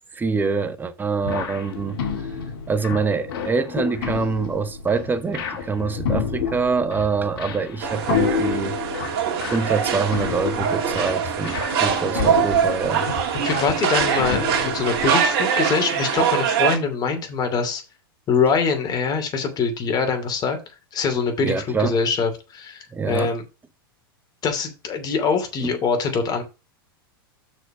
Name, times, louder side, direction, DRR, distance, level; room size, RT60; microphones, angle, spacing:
voice 1, 0.1-2.0 2.7-8.8 9.5-13.1 21.4-21.9 22.9-23.3 25.6-25.7, right 4 dB, 15° right, 1.0 m, -25 dB
sound 1, 1.2-15.0, left 6 dB, 70° left, 1.8 m, -29 dB
sound 2, 7.8-16.8, right 8 dB, 50° right, 2.1 m, -23 dB
voice 2, 13.4-17.8 18.3-20.6 20.9-23.4 24.4-26.4, left 5 dB, 30° left, 2.7 m, -23 dB
6.3 x 5.0 x 6.0 m
hypercardioid pair, 105°, 13 cm